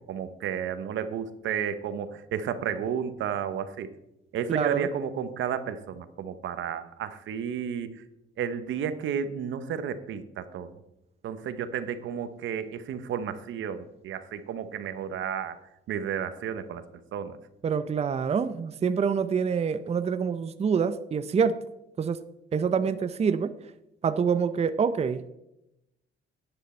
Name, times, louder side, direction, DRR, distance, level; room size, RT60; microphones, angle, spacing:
voice 1, 0.1-3.9 4.3-8.0 8.4-10.7 11.2-15.6 15.9-16.8 17.1-17.4, right 8 dB, 75° right, 11 dB, 0.9 m, -32 dB
voice 2, 4.5-4.9 17.6-21.6 22.0-22.2 22.5-23.6 24.0-25.2, right 6 dB, 30° right, 12 dB, 0.5 m, -26 dB
10.5 x 9.2 x 4.3 m, 0.87 s
cardioid pair, 90°, 20 cm